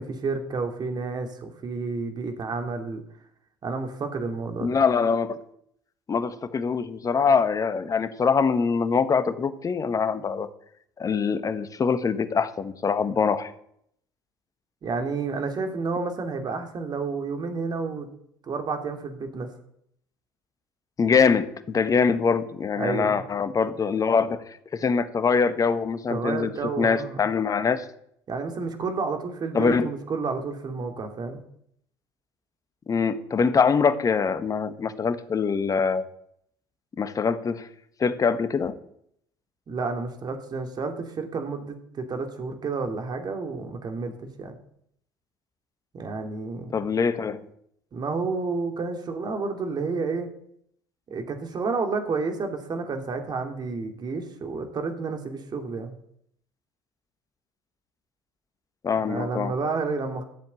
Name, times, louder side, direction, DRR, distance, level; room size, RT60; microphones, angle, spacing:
voice 1, 0.0-3.0 3.6-4.8 14.8-18.1 18.4-19.5 22.7-23.2 26.1-27.2 28.3-31.4 39.7-44.6 45.9-46.9 47.9-50.3 51.1-56.0 59.0-60.2, right 4 dB, 40° right, 6 dB, 2.9 m, -30 dB
voice 2, 4.6-5.4 6.1-10.5 11.0-13.5 21.0-24.4 24.7-27.8 29.5-29.9 32.9-36.1 37.0-37.7 38.0-38.7 46.7-47.4 58.8-59.5, left 5 dB, 30° left, 12 dB, 1.4 m, -23 dB
13.0 x 7.3 x 8.3 m, 0.71 s
hypercardioid pair, 60°, 11 cm